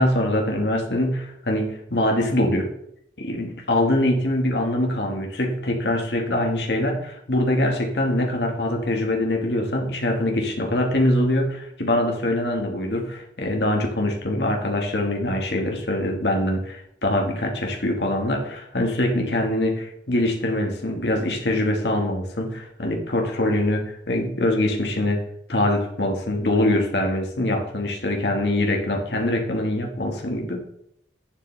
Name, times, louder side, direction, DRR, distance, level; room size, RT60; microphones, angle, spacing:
voice 1, 0.0-2.7 3.2-25.2 25.5-30.6, left 1 dB, 75° left, 1 dB, 1.6 m, -23 dB
11.0 x 7.1 x 3.3 m, 0.71 s
head